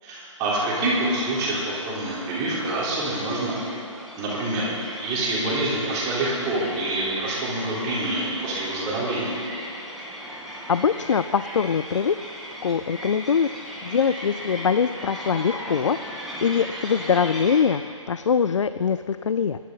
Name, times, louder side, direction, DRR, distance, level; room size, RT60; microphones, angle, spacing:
voice 1, 0.0-3.6 4.2-9.4, right 2 dB, 20° right, -7 dB, 4.0 m, -26 dB
sound 1, 0.6-17.6, equal, ahead, 2.1 m, -38 dB
voice 2, 10.7-12.2 12.6-13.5 13.8-19.6, left 6 dB, 65° left, 13 dB, 0.4 m, -23 dB
23.5 x 11.5 x 4.1 m, 2.4 s
figure-of-eight pair, 140°, 17 cm